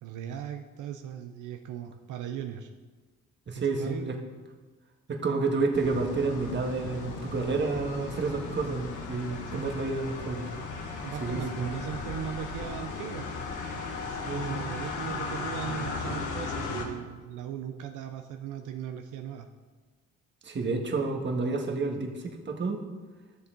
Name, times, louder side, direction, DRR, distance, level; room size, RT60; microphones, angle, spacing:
voice 1, 0.0-2.7 3.6-4.2 9.5-9.7 11.0-13.3 14.3-19.5, right 9 dB, 80° right, 6 dB, 0.6 m, -38 dB
voice 2, 3.5-4.2 5.1-10.5 11.2-11.8 14.2-14.6 20.4-22.8, right 3 dB, 40° right, 2 dB, 1.5 m, -30 dB
Car Passes Under Bridge, 5.7-16.8, left 4 dB, 80° left, 1.5 m, -36 dB
12.5 x 6.7 x 3.8 m, 1.3 s
cardioid pair, 90°, 30 cm